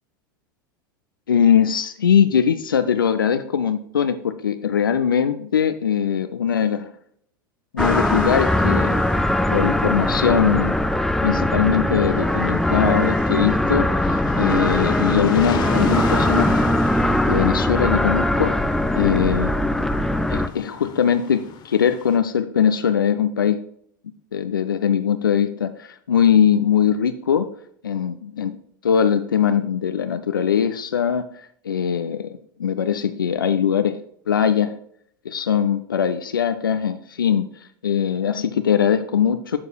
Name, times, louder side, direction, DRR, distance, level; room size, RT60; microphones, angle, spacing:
voice 1, 1.3-6.9 7.7-9.1 9.5-10.7 11.2-16.5 17.3-18.6 18.9-19.5 20.3-23.6 24.3-27.5 27.8-28.6 28.8-31.2 31.6-34.0 34.3-34.8 35.3-37.5 37.8-39.6, left 8 dB, 85° left, 9 dB, 0.4 m, -21 dB
sound 1, 7.8-10.4 10.9-22.2, left 8 dB, 40° left, 0.8 m, -36 dB
sound 2, 7.8-20.5, left 1 dB, 5° left, 0.4 m, -21 dB
11.0 x 4.7 x 2.3 m, 0.67 s
figure-of-eight pair, 85°, 11 cm